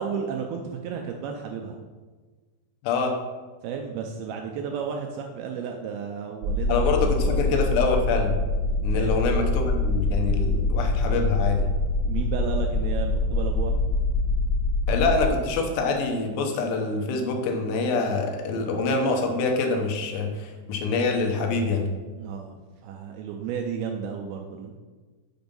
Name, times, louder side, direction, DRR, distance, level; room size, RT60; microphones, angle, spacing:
voice 1, 0.0-1.8 3.6-7.6 8.9-9.2 12.1-13.8 22.2-22.6 22.8-24.8, right 6 dB, 80° right, 3 dB, 2.2 m, -33 dB
voice 2, 2.8-3.1 6.7-8.3 8.8-11.6 14.9-21.9, left 4 dB, 80° left, 3 dB, 3.0 m, -25 dB
sound 1, 6.4-15.3, left 2 dB, 55° right, 1.5 m, -24 dB
7.0 x 5.2 x 5.3 m, 1.4 s
omnidirectional pair, 4.9 m